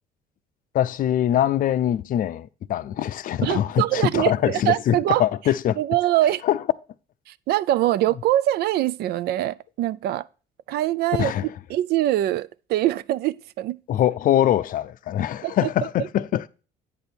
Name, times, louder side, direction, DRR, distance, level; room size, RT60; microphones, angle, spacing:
voice 1, 0.7-5.8 6.4-6.6 11.2-11.5 13.9-16.5, left 11 dB, 55° left, 0.5 m, -23 dB
voice 2, 3.4-5.2 5.8-6.4 7.3-10.3 10.7-13.8 15.4-15.7, right 14 dB, 70° right, 0.4 m, -23 dB
8.9 x 5.2 x 4.4 m
cardioid pair, 110°, 17 cm